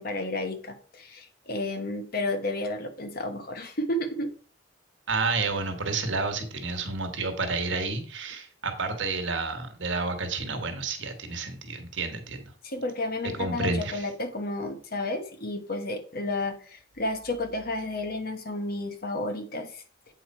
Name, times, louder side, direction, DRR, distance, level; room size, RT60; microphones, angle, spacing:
voice 1, 0.0-4.3 12.6-19.8, left 2 dB, 50° left, 7 dB, 1.0 m, -32 dB
voice 2, 5.1-12.4 13.4-14.1, right 3 dB, 70° right, 6 dB, 1.3 m, -30 dB
8.0 x 4.8 x 4.2 m, 0.43 s
head